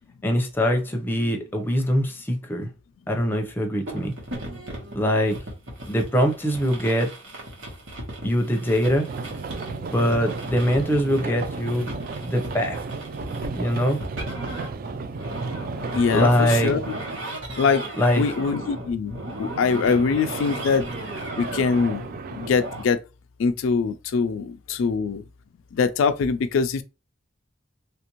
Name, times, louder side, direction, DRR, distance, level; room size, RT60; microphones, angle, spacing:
voice 1, 0.2-2.7 3.1-4.1 4.9-5.4 5.9-7.1 8.2-9.1 9.8-11.9 12.2-12.8 13.6-14.0 16.1-16.7 18.0-18.2, equal, 10° left, 0.6 m, -23 dB
sound 1, 3.9-22.8, right 1 dB, 80° right, 1.2 m, -36 dB
sound 2, 9.1-17.3 19.5-22.5, right 4 dB, 50° right, 0.3 m, -34 dB
voice 2, 15.9-17.0 17.6-17.8 18.2-20.9 21.4-22.1 22.3-23.0 23.4-25.2 25.7-26.8, left 5 dB, 80° left, 0.3 m, -23 dB
3.3 x 2.5 x 2.9 m
head